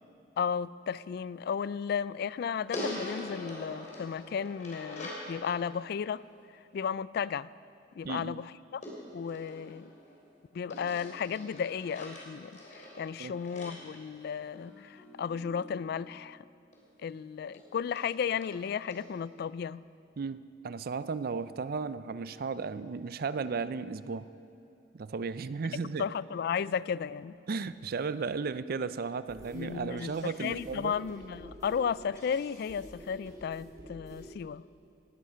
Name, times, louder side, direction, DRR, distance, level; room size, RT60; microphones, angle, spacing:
voice 1, 0.4-6.2 6.7-7.5 8.0-8.8 9.1-9.9 10.5-16.4 17.0-19.8 26.0-27.4 29.5-34.6, left 7 dB, 60° left, 19 dB, 0.3 m, -34 dB
sound 1, 2.7-5.3 8.8-10.2 10.7-14.8 16.7-16.8 17.1-17.2 17.5-17.6 18.0-18.1 18.4-18.5 18.9-19.0, left 1 dB, 45° left, 3.6 m, -43 dB
voice 2, 8.0-8.4 13.2-13.3 20.2-24.3 24.9-26.1 27.5-30.9, right 4 dB, 55° right, 14 dB, 0.4 m, -35 dB
sound 2, 14.5-17.7 18.1-18.3, equal, 15° left, 3.1 m, -55 dB
sound 3, 29.3-34.3, right 1 dB, 20° right, 2.4 m, -49 dB
18.0 x 11.5 x 5.7 m, 2.7 s
head